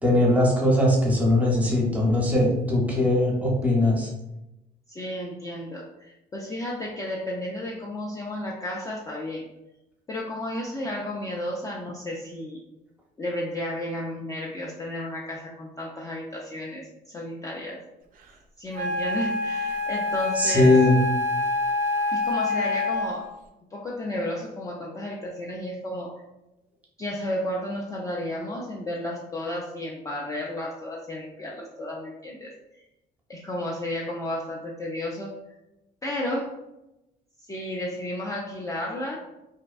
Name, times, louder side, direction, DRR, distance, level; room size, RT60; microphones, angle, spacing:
voice 1, 0.0-4.1 20.4-21.0, left 1 dB, 10° right, -3 dB, 0.7 m, -20 dB
voice 2, 4.9-9.5 10.1-12.6 13.2-17.8 18.6-20.8 22.1-23.3 23.7-26.1 27.0-32.5 33.3-35.4 36.0-36.5 37.5-39.2, left 1 dB, 20° left, -3 dB, 0.4 m, -32 dB
Wind instrument woodwind instrument, 18.7-23.3, left 2 dB, 55° right, 0.4 m, -27 dB
2.5 x 2.1 x 2.3 m, 0.92 s
cardioid pair, 110°, 17 cm